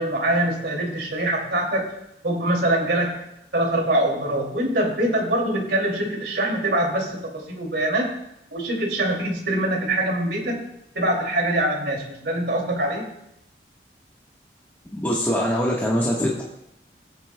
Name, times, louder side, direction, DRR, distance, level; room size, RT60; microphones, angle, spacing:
voice 1, 0.0-1.9 2.2-3.2 3.5-8.1 8.5-10.6 10.9-13.1, right 1 dB, 70° right, -1 dB, 2.5 m, -24 dB
voice 2, 14.9-16.4, equal, 10° left, -5 dB, 1.2 m, -23 dB
18.0 x 8.7 x 2.2 m, 0.82 s
head